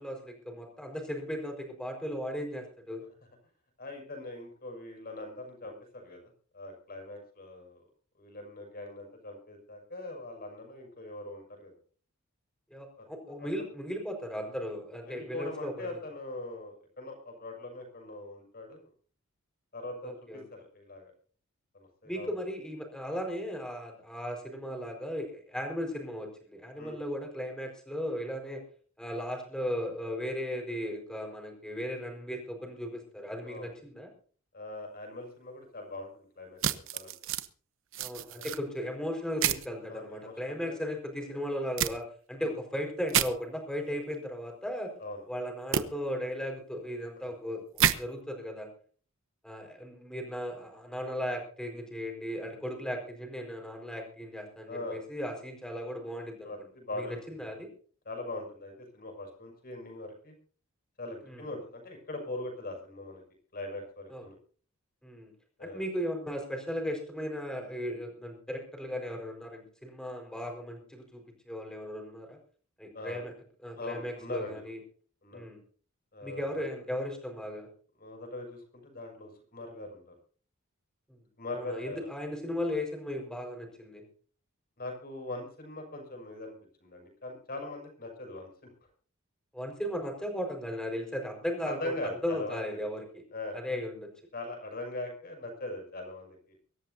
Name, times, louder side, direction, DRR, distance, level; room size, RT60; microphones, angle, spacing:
voice 1, 0.0-3.0 12.7-16.0 20.0-20.4 22.0-28.6 29.0-34.1 38.0-44.9 45.3-48.7 49.4-56.7 56.9-57.7 61.2-61.5 64.1-64.2 65.0-65.3 65.6-72.4 72.8-73.3 73.6-74.8 75.3-75.6 76.2-77.7 81.1-81.2 81.5-84.0 89.5-91.9 92.2-93.2 93.5-94.1, equal, 5° left, 3 dB, 5.0 m, -36 dB
voice 2, 3.8-6.2 6.5-7.8 8.2-11.7 13.0-13.1 15.0-18.9 19.7-21.1 21.7-22.3 26.8-27.0 33.4-33.7 34.5-36.6 36.9-37.1 38.3-38.5 39.9-40.8 42.4-42.6 45.0-45.2 54.7-55.0 56.4-57.5 58.0-60.3 61.0-63.2 63.5-64.4 65.6-65.8 72.9-73.2 73.8-74.6 75.2-75.4 76.1-76.6 78.0-80.1 81.4-82.1 84.8-86.5 86.8-88.7 91.7-92.8 93.3-93.6 94.3-96.6, left 2 dB, 45° left, 3 dB, 6.7 m, -41 dB
sound 1, 36.6-37.5 37.9-38.6 39.4-39.7 41.8-41.9 43.1-43.3 45.7-45.8 47.8-48.0, right 9 dB, 65° right, 1.0 m, -28 dB
24.0 x 13.5 x 2.8 m, 0.43 s
head